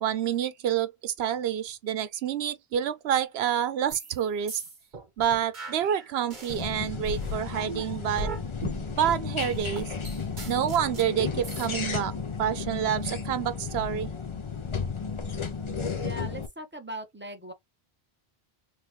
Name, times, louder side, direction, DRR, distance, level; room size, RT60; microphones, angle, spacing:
voice 1, 0.0-4.6 5.2-8.4 9.0-9.9 10.5-14.1, right 9 dB, 85° right, 0.9 m, -28 dB
sound 1, 3.9-4.2 4.5-6.7 7.0-11.7, right 1 dB, 50° right, 1.4 m, -38 dB
sound 2, 6.5-16.5, left 5 dB, 35° left, 0.7 m, -33 dB
voice 2, 16.0-17.5, equal, 10° right, 1.0 m, -39 dB
3.6 x 3.3 x 3.0 m
omnidirectional pair, 1.0 m